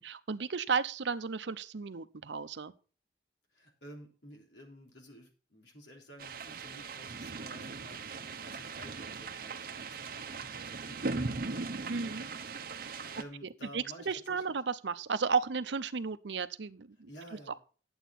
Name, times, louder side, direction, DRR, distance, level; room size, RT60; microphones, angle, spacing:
voice 1, 0.0-2.7 11.9-12.3 13.7-17.1, right 5 dB, 85° right, 0.7 m, -33 dB
voice 2, 3.5-14.4 17.1-17.6, equal, 85° left, 3.3 m, -53 dB
sound 1, 6.2-13.2, right 4 dB, 55° right, 0.9 m, -39 dB
11.0 x 8.0 x 4.2 m
head